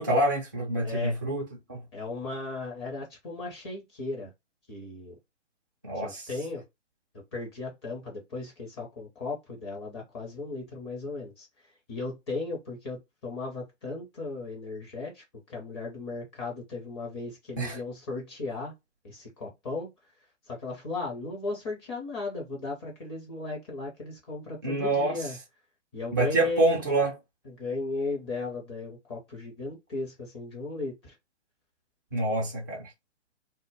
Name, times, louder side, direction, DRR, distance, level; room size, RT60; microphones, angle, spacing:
voice 1, 0.0-1.8 5.8-6.2 17.6-17.8 24.6-25.1 26.1-27.1 32.1-32.9, right 2 dB, 20° right, 0.3 m, -26 dB
voice 2, 0.8-1.2 1.9-4.3 4.7-5.1 6.0-6.6 7.3-11.5 11.9-15.2 15.5-18.7 19.0-19.9 20.5-25.4 25.9-26.8 27.4-31.1, left 3 dB, 20° left, 0.6 m, -36 dB
2.1 x 2.0 x 3.3 m
figure-of-eight pair, 125°, 36 cm